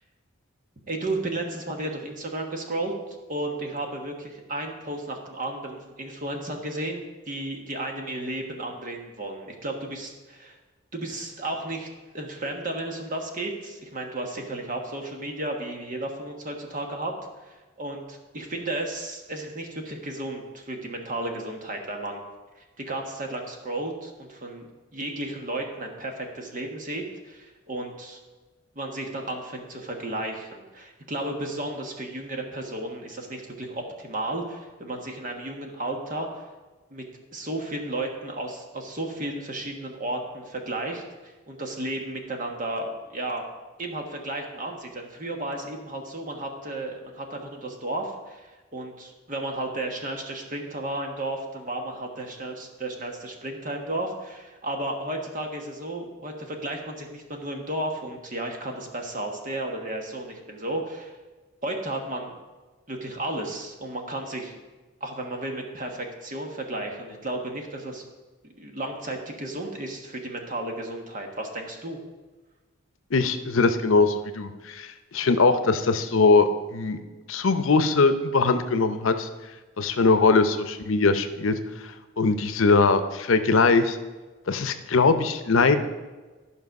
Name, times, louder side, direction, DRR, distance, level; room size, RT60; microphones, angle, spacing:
voice 1, 0.9-2.9 3.3-10.6 10.9-11.9 12.1-17.1 17.4-22.2 22.8-24.7 24.9-28.2 28.7-36.4 36.9-37.0 37.3-43.4 43.8-61.2 61.6-62.4 62.9-64.5 65.0-68.0 68.4-72.0, right 1 dB, 40° right, 3 dB, 1.3 m, -33 dB
voice 2, 73.1-77.0 77.3-79.3 79.8-84.0 84.5-85.8, left 4 dB, 85° left, 9 dB, 0.7 m, -21 dB
12.0 x 5.4 x 5.3 m, 1.3 s
head